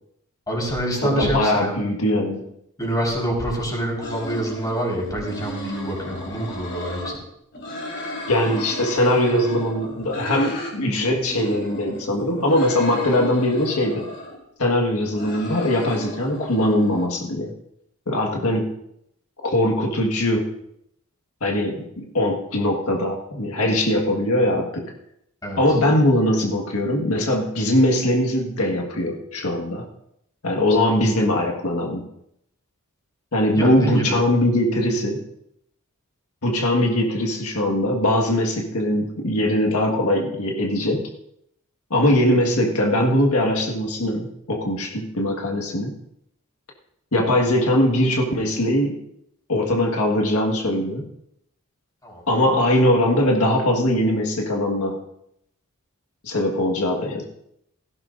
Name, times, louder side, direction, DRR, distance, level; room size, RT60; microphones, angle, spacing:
voice 1, 0.5-1.7 2.8-7.2 25.4-25.6 33.5-34.2 52.0-52.2, right 1 dB, 15° left, -2 dB, 4.5 m, -26 dB
voice 2, 1.0-2.5 8.3-14.1 14.6-17.5 18.1-18.7 19.4-20.5 21.4-24.9 25.6-29.9 30.4-32.1 33.3-35.2 36.4-41.1 41.9-46.0 47.1-49.0 49.5-51.1 52.3-55.0 56.2-57.2, left 1 dB, 80° left, 1 dB, 1.7 m, -21 dB
sound 1, 4.0-7.2 7.5-10.7 11.1-14.4 14.9-17.1, left 1 dB, 55° left, 4.0 m, -35 dB
17.5 x 15.5 x 2.6 m, 0.77 s
head